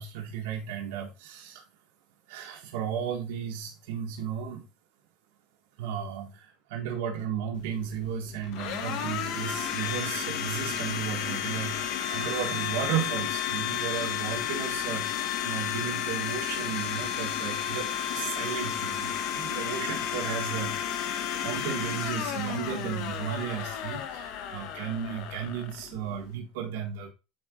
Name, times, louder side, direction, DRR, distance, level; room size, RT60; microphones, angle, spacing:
voice 1, 0.0-1.6 2.3-4.7 5.8-27.1, right 8 dB, 85° right, 0 dB, 1.5 m, -34 dB
Domestic sounds home sounds, 7.5-26.4, left 9 dB, 65° left, 1.4 m, -32 dB
9.4 x 3.9 x 3.7 m, 0.28 s
cardioid pair, 135°, 0 cm